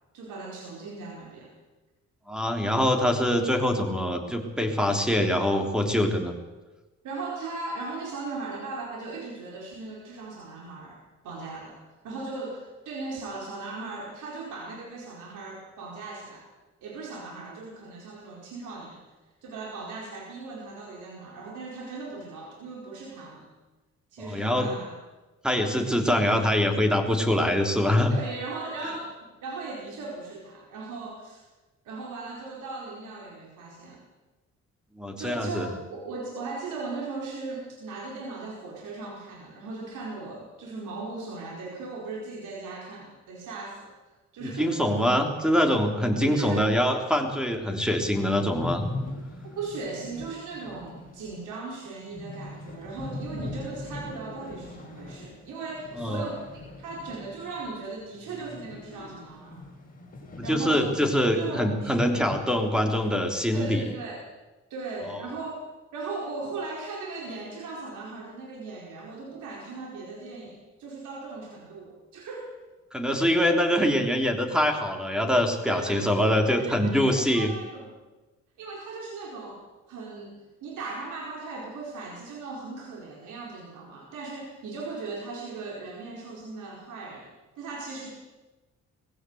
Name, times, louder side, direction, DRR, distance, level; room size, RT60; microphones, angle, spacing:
voice 1, 0.1-1.5 7.0-11.8 12.0-16.4 16.8-19.0 19.4-23.5 24.1-24.9 26.1-26.3 28.1-31.5 31.8-34.0 35.2-43.9 44.3-44.8 46.2-46.7 49.4-56.5 56.7-59.6 60.4-60.9 61.3-62.2 63.5-64.3 64.7-65.7 65.9-72.5 73.1-73.5 75.7-77.9 78.6-79.6 79.9-88.1, right 3 dB, 80° right, -2 dB, 4.7 m, -38 dB
voice 2, 2.3-6.4 24.2-24.7 25.4-28.1 35.0-35.7 44.4-48.9 56.0-56.2 60.4-63.9 72.9-77.5, equal, 5° right, 4 dB, 3.6 m, -24 dB
sound 1, 46.8-46.9 47.2-47.3 47.5-57.7 58.0-62.4 62.7-62.8 63.4-63.9, left 2 dB, 30° left, 6.9 m, -41 dB
20.0 x 16.5 x 8.1 m, 1.2 s
cardioid pair, 90°, 30 cm